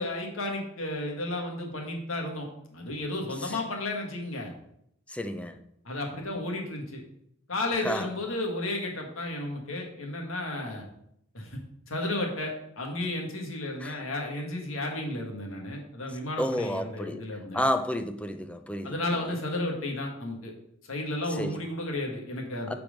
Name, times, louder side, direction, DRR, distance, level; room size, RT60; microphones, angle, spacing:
voice 1, 0.0-4.5 5.9-7.0 7.5-10.8 11.3-11.6 11.9-17.7 18.8-20.5 20.9-22.7, left 2 dB, 75° left, 1.8 m, -33 dB
voice 2, 5.1-5.6 7.8-8.1 13.8-14.0 16.4-17.2 17.5-18.9 21.4-21.5 22.7-22.8, equal, 5° left, 0.5 m, -30 dB
8.9 x 4.6 x 5.2 m
head